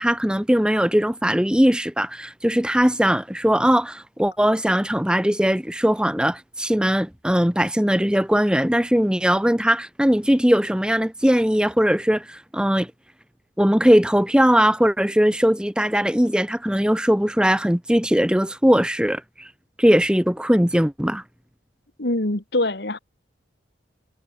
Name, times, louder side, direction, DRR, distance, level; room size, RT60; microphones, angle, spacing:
voice 1, 0.0-12.9 13.6-19.5 19.8-21.2, equal, 5° right, 1.1 m, -20 dB
voice 2, 22.0-23.0, left 1 dB, 60° left, 2.0 m, -24 dB
head